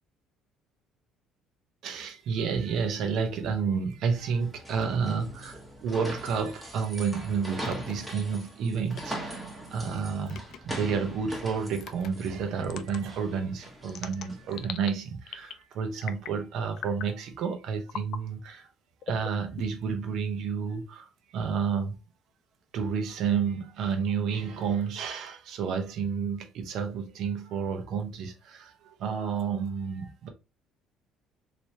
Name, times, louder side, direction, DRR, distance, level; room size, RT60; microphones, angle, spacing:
voice 1, 1.8-9.4 9.7-18.7 19.1-22.0 22.7-30.3, right 6 dB, 60° right, 0.7 m, -30 dB
sound 1, 4.2-14.6, equal, ahead, 1.0 m, -41 dB
sound 2, 7.6-7.9 8.9-9.2 10.3-10.6 11.8-12.1 12.6-13.0 13.9-14.9 15.3-15.6 16.0-16.4 16.8-17.1 17.9-18.2 19.0-19.9, left 9 dB, 55° left, 0.3 m, -40 dB
3.2 x 3.0 x 2.7 m
cardioid pair, 130°, 0 cm